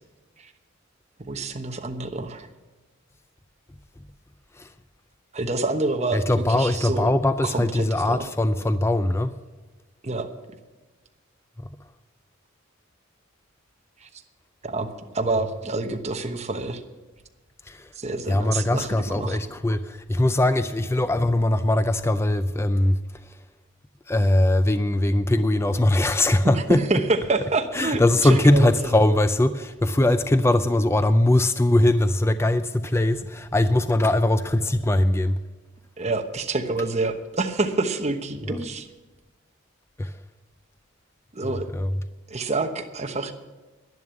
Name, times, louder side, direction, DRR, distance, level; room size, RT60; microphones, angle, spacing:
voice 1, 1.2-2.5 5.3-6.2 6.5-7.1 7.4-8.2 10.0-10.3 14.0-14.1 14.6-14.9 15.1-16.8 17.9-19.4 26.9-29.0 36.0-38.9 41.3-41.7 42.3-43.3, right 3 dB, 35° right, 1.1 m, -27 dB
voice 2, 6.1-9.4 11.6-11.7 17.6-17.9 18.3-23.4 24.1-26.8 27.7-35.4 38.5-38.6 40.0-40.2 41.7-41.9, left 1 dB, 15° left, 0.4 m, -21 dB
11.0 x 11.0 x 7.0 m
head